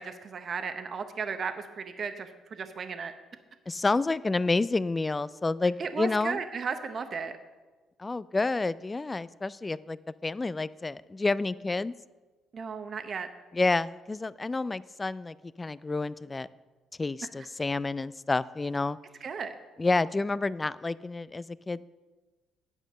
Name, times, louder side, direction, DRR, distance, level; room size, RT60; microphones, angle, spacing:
voice 1, 0.0-3.1 5.8-7.3 12.5-13.3 19.2-19.5, right 5 dB, 50° right, 8 dB, 0.8 m, -35 dB
voice 2, 3.7-6.4 8.0-11.9 13.5-16.5 17.0-19.0 19.8-21.9, left 3 dB, 25° left, 18 dB, 0.3 m, -29 dB
9.8 x 5.2 x 7.4 m, 1.3 s
cardioid pair, 75°, 0 cm